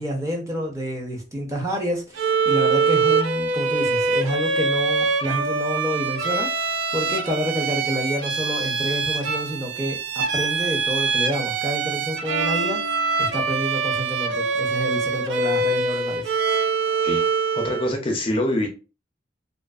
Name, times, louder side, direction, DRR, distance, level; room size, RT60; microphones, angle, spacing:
voice 1, 0.0-6.5 6.9-10.0 10.3-16.3, equal, 15° right, 0.6 m, -28 dB
Bowed string instrument, 2.2-17.9, right 4 dB, 75° right, 0.3 m, -24 dB
voice 2, 17.5-18.7, left 1 dB, 30° left, 0.4 m, -24 dB
2.4 x 2.4 x 2.3 m
head